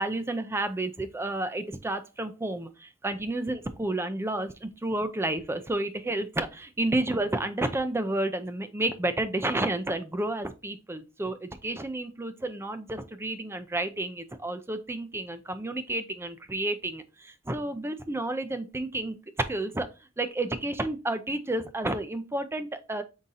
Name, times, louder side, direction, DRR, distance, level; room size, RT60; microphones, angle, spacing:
voice 1, 0.0-19.2 19.5-19.9 20.2-23.0, right 2 dB, 10° right, 9 dB, 0.4 m, -31 dB
5.5 x 3.7 x 2.6 m, 0.29 s
head